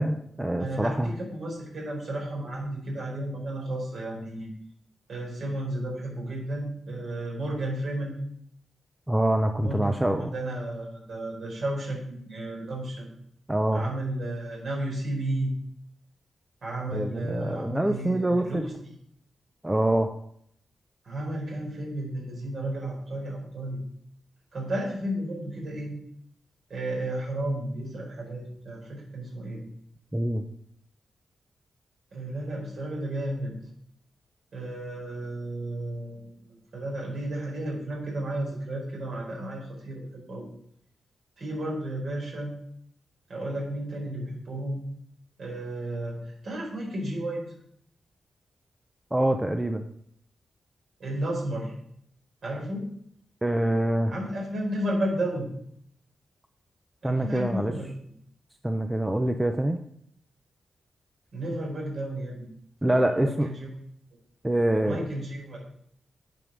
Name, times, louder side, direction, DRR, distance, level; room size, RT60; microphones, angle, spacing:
voice 1, 0.0-1.1 9.1-10.3 13.5-13.9 16.9-18.6 19.6-20.1 30.1-30.5 49.1-49.9 53.4-54.1 57.0-57.7 58.6-59.8 62.8-63.5 64.4-65.0, right 1 dB, 10° right, 6 dB, 0.5 m, -25 dB
voice 2, 0.6-4.5 5.1-8.2 9.6-13.1 13.7-15.5 16.6-18.7 21.0-23.8 24.5-25.9 26.7-29.6 32.1-33.6 34.5-40.5 41.4-42.5 43.3-44.8 45.4-47.4 51.0-51.7 52.4-52.9 54.1-55.5 57.0-57.9 61.3-62.5 62.9-63.7 64.8-65.6, right 1 dB, 60° right, -2 dB, 4.5 m, -33 dB
9.1 x 5.3 x 6.3 m, 0.69 s
wide cardioid pair, 140°, 0 cm